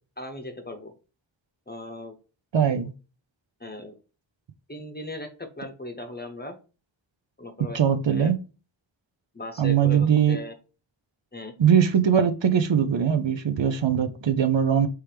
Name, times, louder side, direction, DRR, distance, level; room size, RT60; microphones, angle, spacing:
voice 1, 0.2-0.9 1.7-2.1 2.6-2.9 3.6-3.9 4.7-6.5 7.4-7.8 8.1-8.3 9.3-10.5 11.3-11.5, left 2 dB, 20° left, 5 dB, 0.8 m, -38 dB
voice 2, 2.5-2.9 7.7-8.4 9.6-10.4 11.6-14.9, right 8 dB, 70° right, 9 dB, 0.6 m, -21 dB
4.5 x 3.2 x 3.3 m, 0.34 s
wide cardioid pair, 45°, 47 cm